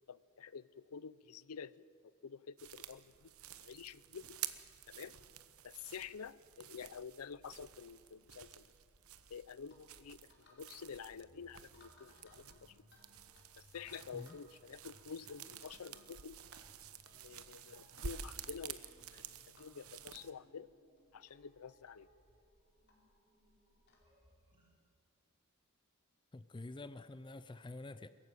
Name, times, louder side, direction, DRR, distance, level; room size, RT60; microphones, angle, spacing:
voice 1, 0.1-3.3 3.6-4.4 4.9-5.1 5.6-8.7 9.3-12.7 13.6-16.4 17.1-19.3 19.6-20.7 21.1-22.1, left 6 dB, 80° left, 19 dB, 0.6 m, -49 dB
sound 1, 2.6-20.3, right 8 dB, 75° right, 1.0 m, -51 dB
sound 2, 9.7-9.8 10.3-10.7 10.9-11.2 11.7-13.1 13.3-13.4 13.7-14.4 14.8-14.9 15.3-16.1 16.4-16.6 17.1-17.2 17.7-18.5 18.8-18.9 19.6-19.7 20.1-20.2 21.0-21.1 21.3-21.4 21.9-22.0 22.9-23.0 23.9-24.1, left 3 dB, 50° left, 4.4 m, -64 dB
sound 3, 10.9-24.7, left 1 dB, 25° right, 5.0 m, -70 dB
voice 2, 26.3-28.1, left 2 dB, 20° left, 14 dB, 0.5 m, -48 dB
22.5 x 14.5 x 9.2 m, 2.3 s
head